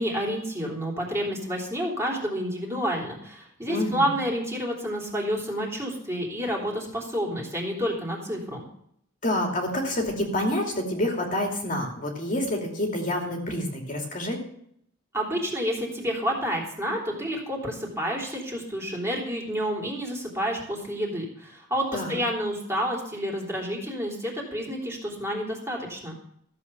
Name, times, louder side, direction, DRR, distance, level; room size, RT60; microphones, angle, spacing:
voice 1, 0.0-8.6 15.1-26.1, equal, 15° right, -2 dB, 3.2 m, -29 dB
voice 2, 3.7-4.2 9.2-14.4 21.9-22.2, left 1 dB, 35° left, 0 dB, 2.6 m, -28 dB
14.5 x 7.6 x 6.9 m, 0.69 s
head